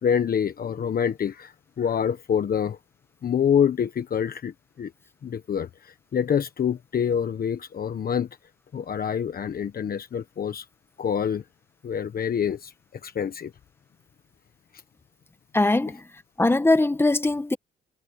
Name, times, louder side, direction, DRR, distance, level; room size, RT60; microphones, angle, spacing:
voice 1, 0.0-2.8 3.2-4.9 5.2-8.3 8.7-10.7 11.0-11.4 11.8-12.7 13.0-13.5, left 8 dB, 50° left, 1.3 m, -26 dB
voice 2, 15.5-16.0 16.4-17.6, left 2 dB, 10° left, 1.7 m, -21 dB
cardioid pair, 90°, 20 cm